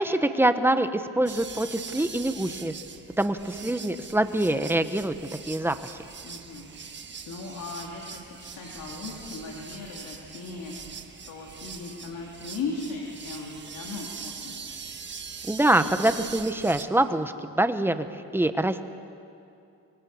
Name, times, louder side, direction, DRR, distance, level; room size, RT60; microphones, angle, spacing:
voice 1, 0.0-2.7 3.2-5.1 5.5-6.0 15.4-18.9, right 1 dB, 5° right, 10 dB, 1.2 m, -25 dB
sound 1, 1.3-16.8, right 6 dB, 35° right, 1.6 m, -42 dB
voice 2, 6.2-6.7 7.3-14.7, left 4 dB, 65° left, -1 dB, 3.6 m, -38 dB
24.5 x 24.5 x 7.2 m, 2.6 s
cardioid pair, 110°, 33 cm